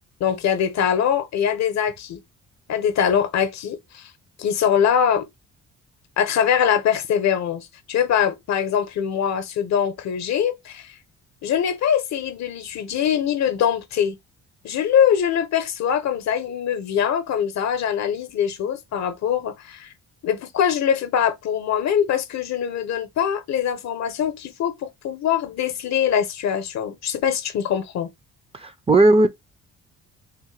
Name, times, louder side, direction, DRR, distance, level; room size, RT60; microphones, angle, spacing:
voice 1, 0.2-2.2 2.7-4.1 4.4-5.3 6.2-10.9 11.4-14.2 14.6-19.9 20.2-28.1, left 8 dB, 65° left, 0.7 m, -23 dB
voice 2, 28.5-29.3, right 2 dB, 20° right, 0.4 m, -16 dB
3.6 x 2.1 x 3.1 m
cardioid pair, 90°, 30 cm